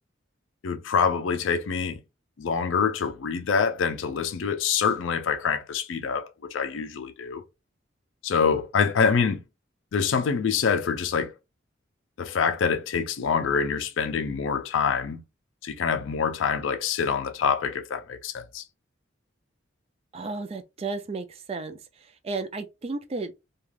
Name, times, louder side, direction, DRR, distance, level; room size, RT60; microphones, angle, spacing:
voice 1, 0.6-2.0 2.4-7.4 8.2-9.4 9.9-11.3 12.2-15.2 15.6-18.6, left 6 dB, 75° left, 0.4 m, -25 dB
voice 2, 20.1-21.8 22.2-23.3, right 3 dB, 30° right, 0.4 m, -33 dB
2.4 x 2.3 x 3.1 m
head